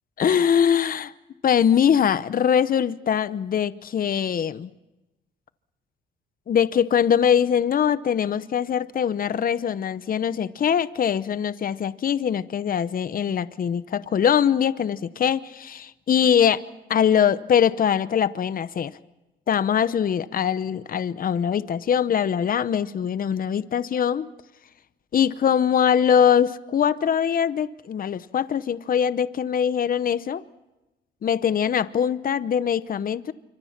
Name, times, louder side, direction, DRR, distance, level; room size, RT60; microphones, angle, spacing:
voice 1, 0.2-1.1 1.4-4.7 6.5-16.6 16.9-18.9 19.5-24.3 25.1-30.4 31.2-33.3, left 8 dB, 45° left, 16 dB, 0.8 m, -22 dB
26.0 x 25.0 x 5.9 m, 1.0 s
cardioid pair, 90°, 20 cm